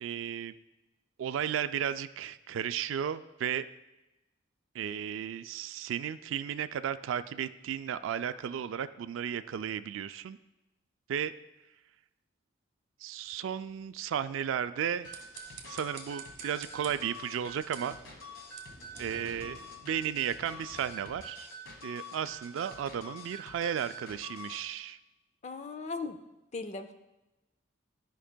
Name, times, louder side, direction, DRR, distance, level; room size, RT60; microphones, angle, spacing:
voice 1, 0.0-0.5 1.2-3.7 4.7-10.4 11.1-11.3 13.0-15.1 15.7-18.0 19.0-21.5 21.8-25.0, right 8 dB, 85° right, 13 dB, 0.3 m, -34 dB
sound 1, 14.8-20.1, right 6 dB, 55° right, 1.1 m, -52 dB
sound 2, 15.0-24.6, equal, 85° left, 1.2 m, -46 dB
Thunder, 15.3-15.4 15.7-15.8 16.1-21.3, equal, 15° right, 2.0 m, -56 dB
voice 2, 25.4-26.2 26.5-26.9, left 4 dB, 35° left, 9 dB, 0.4 m, -38 dB
12.5 x 5.3 x 2.2 m, 1.0 s
head